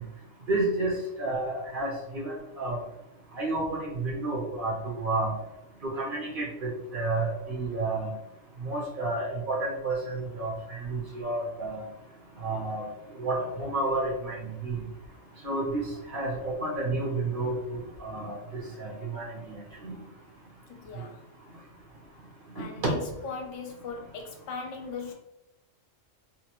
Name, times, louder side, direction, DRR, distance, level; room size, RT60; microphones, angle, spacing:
voice 1, 0.5-2.8 3.4-5.3 5.8-8.1 8.6-11.8 12.4-12.8 13.2-14.4 14.6-14.8 15.4-18.4 18.8-20.0 22.6-22.7, right 2 dB, 50° right, -3 dB, 0.8 m, -31 dB
voice 2, 20.7-21.2 22.5-25.1, left 4 dB, 75° left, 2 dB, 0.9 m, -39 dB
2.9 x 2.5 x 2.9 m, 0.91 s
omnidirectional pair, 1.3 m